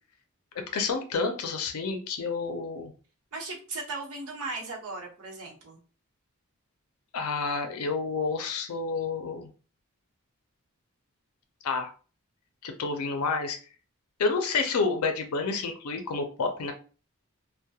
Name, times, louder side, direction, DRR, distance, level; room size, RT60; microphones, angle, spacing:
voice 1, 0.7-2.9 7.1-9.5 11.6-11.9 12.6-13.6 14.2-16.7, left 4 dB, 85° left, 5 dB, 0.5 m, -29 dB
voice 2, 3.3-5.8, right 3 dB, 80° right, -1 dB, 0.8 m, -37 dB
2.2 x 2.1 x 2.7 m, 0.37 s
head